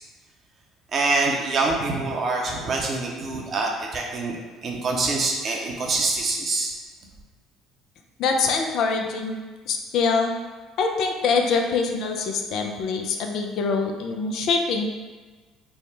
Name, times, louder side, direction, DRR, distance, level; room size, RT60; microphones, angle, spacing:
voice 1, 0.9-4.4 4.6-6.7, right 3 dB, 45° right, 0 dB, 0.7 m, -25 dB
voice 2, 8.2-10.3 10.8-14.9, left 4 dB, 65° left, 3 dB, 0.4 m, -24 dB
3.4 x 2.2 x 3.8 m, 1.3 s
hypercardioid pair, 55°, 0 cm